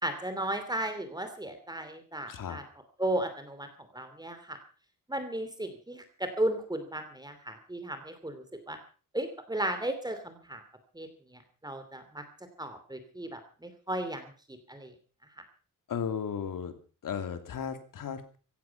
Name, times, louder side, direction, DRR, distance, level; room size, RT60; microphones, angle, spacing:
voice 1, 0.0-2.6 3.0-4.6 5.1-8.8 9.1-10.6 10.9-12.2 12.6-14.3 14.7-14.9, right 1 dB, 10° right, 8 dB, 2.9 m, -35 dB
voice 2, 2.3-2.6 15.9-16.7 17.0-18.4, left 7 dB, 80° left, 8 dB, 2.8 m, -35 dB
16.5 x 15.0 x 5.9 m, 0.39 s
cardioid pair, 100°, 33 cm